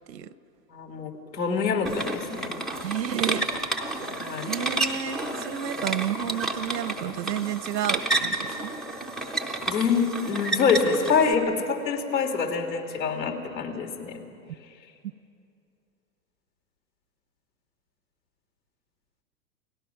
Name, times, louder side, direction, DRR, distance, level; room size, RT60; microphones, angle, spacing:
voice 1, 0.7-2.6 4.2-4.5 9.7-14.2, left 5 dB, 85° left, 2 dB, 3.3 m, -26 dB
sound 1, 1.8-11.3, right 2 dB, ahead, 0.5 m, -30 dB
voice 2, 2.8-3.4 4.5-8.7, right 9 dB, 85° right, 15 dB, 1.1 m, -31 dB
29.5 x 18.0 x 6.0 m, 2.5 s
hypercardioid pair, 135°, 49 cm